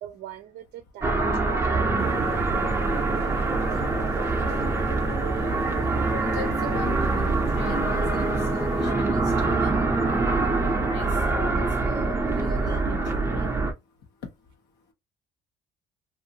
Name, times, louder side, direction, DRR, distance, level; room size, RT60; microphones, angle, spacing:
voice 1, 0.0-2.2, right 11 dB, 75° right, 0.5 m, -41 dB
sound 1, 1.0-13.7, right 3 dB, 15° right, 0.7 m, -24 dB
sound 2, 2.0-8.9, left 3 dB, 35° left, 1.0 m, -42 dB
voice 2, 3.7-4.2 4.5-4.8 5.7-13.6 14.2-14.5, left 5 dB, 80° left, 1.0 m, -40 dB
2.6 x 2.5 x 2.8 m
cardioid pair, 110°, 17 cm